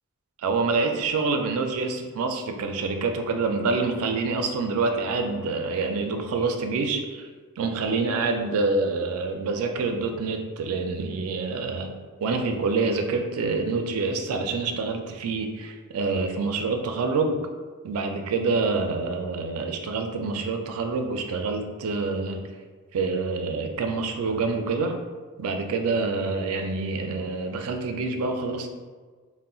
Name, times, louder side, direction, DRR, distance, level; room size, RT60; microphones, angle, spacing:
voice 1, 0.4-7.3 7.6-11.9 12.2-17.5 17.8-22.5 22.9-25.0 25.4-28.7, right 3 dB, 80° right, 5 dB, 0.3 m, -26 dB
2.3 x 2.1 x 3.7 m, 1.5 s
head